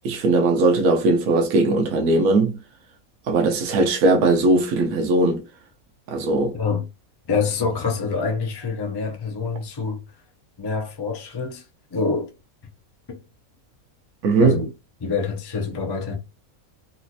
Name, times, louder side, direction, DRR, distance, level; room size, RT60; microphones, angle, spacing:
voice 1, 0.0-2.6 3.3-5.4 6.1-6.6 14.2-14.6, right 2 dB, 75° right, 1.2 m, -19 dB
voice 2, 6.5-6.9 7.3-10.0 10.6-11.7 11.9-12.3 13.1-13.2 14.4-14.7 15.0-16.2, left 4 dB, 40° left, 0.3 m, -26 dB
4.1 x 2.4 x 2.6 m
omnidirectional pair, 1.5 m